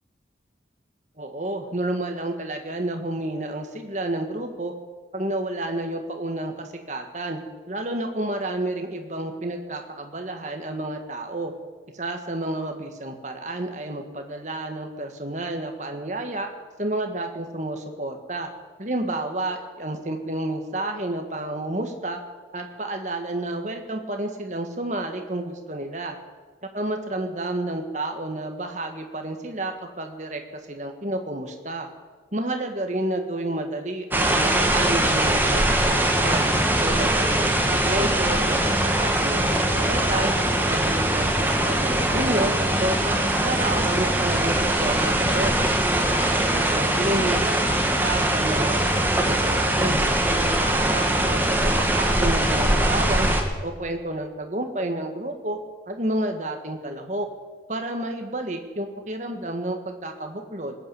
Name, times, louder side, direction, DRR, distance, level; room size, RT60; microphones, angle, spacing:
voice 1, 1.2-4.7 5.1-7.4 7.7-11.5 11.9-16.5 16.8-18.5 18.8-22.2 22.5-26.2 26.7-31.9 32.3-36.5 36.8-40.3 40.7-42.5 42.8-45.6 46.0-50.0 50.3-53.3 53.6-55.6 55.9-57.3 57.7-60.8, right 1 dB, 40° right, 4 dB, 1.6 m, -30 dB
sound 1, 34.1-53.4, right 1 dB, 10° right, 1.4 m, -22 dB
19.5 x 8.8 x 7.8 m, 1.4 s
head